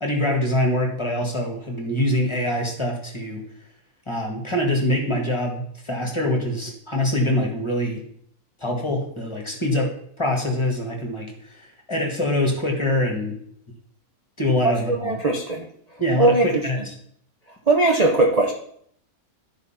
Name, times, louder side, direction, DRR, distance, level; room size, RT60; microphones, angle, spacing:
voice 1, 0.0-3.4 4.1-8.0 8.6-9.9 10.2-13.4 14.4-15.1 16.0-16.9, left 1 dB, 20° left, 0 dB, 1.9 m, -24 dB
voice 2, 14.9-15.6 16.2-16.6 17.7-18.5, right 2 dB, 30° right, -1 dB, 0.9 m, -19 dB
12.0 x 4.1 x 5.8 m, 0.65 s
omnidirectional pair, 1.6 m